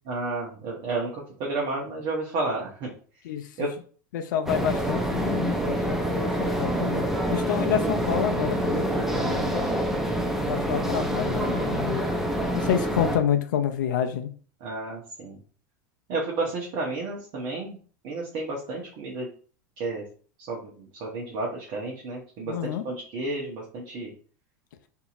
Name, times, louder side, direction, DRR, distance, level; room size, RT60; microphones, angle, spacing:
voice 1, 0.1-2.9 3.6-3.7 14.6-15.4 16.1-17.8 18.0-19.3 19.8-20.0 20.5-24.1, right 3 dB, 55° right, -2 dB, 0.9 m, -31 dB
voice 2, 4.1-7.0 7.3-9.7 10.4-12.0 12.5-14.3 22.4-22.8, left 9 dB, 75° left, 8 dB, 0.4 m, -28 dB
sound 1, 4.5-13.2, right 1 dB, 5° right, 0.6 m, -26 dB
2.7 x 2.7 x 2.5 m, 0.42 s
hypercardioid pair, 90°, 10 cm